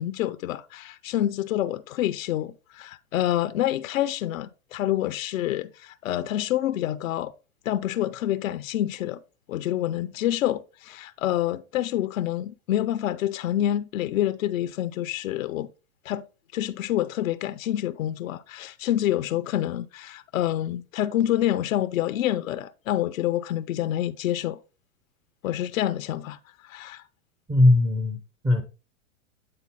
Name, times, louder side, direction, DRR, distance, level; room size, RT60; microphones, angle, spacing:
voice 1, 0.0-7.3 7.7-9.2 9.5-15.7 16.0-16.2 16.5-24.6 25.4-26.4 26.6-27.0, left 12 dB, 75° left, 0.7 m, -27 dB
voice 2, 27.5-28.6, left 2 dB, 10° right, 0.5 m, -20 dB
8.8 x 4.0 x 4.0 m
hypercardioid pair, 130°, 41 cm